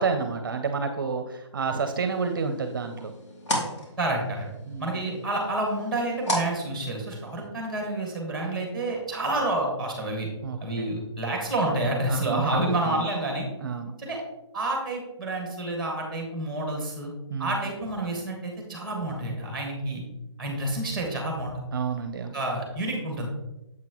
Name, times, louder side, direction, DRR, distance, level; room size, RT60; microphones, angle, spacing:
voice 1, 0.0-3.1 4.7-5.0 10.4-10.9 12.1-12.6 12.9-13.0 13.6-13.9 17.3-17.5 21.7-22.3, right 5 dB, 45° right, 7 dB, 0.6 m, -29 dB
sound 1, 2.1-7.5, equal, 75° left, 2.6 m, -35 dB
voice 2, 4.0-4.5 4.8-10.3 10.6-13.5 14.0-14.2 14.5-17.1 17.4-20.0 20.4-21.5 22.3-23.3, right 2 dB, ahead, 0 dB, 1.3 m, -29 dB
7.5 x 5.7 x 3.0 m, 0.94 s
hypercardioid pair, 175°, 15 cm